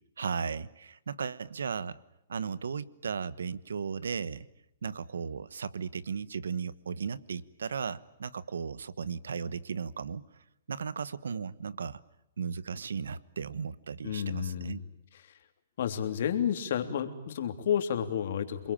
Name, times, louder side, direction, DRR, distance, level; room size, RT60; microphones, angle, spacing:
voice 1, 0.2-2.0 2.3-4.5 4.8-10.2 10.7-12.0 12.4-14.8, right 6 dB, 90° right, 19 dB, 1.2 m, -36 dB
voice 2, 14.0-14.8 15.8-18.7, left 9 dB, 65° left, 7 dB, 3.2 m, -31 dB
29.0 x 22.0 x 8.8 m, 0.82 s
hypercardioid pair, 145°, 0 cm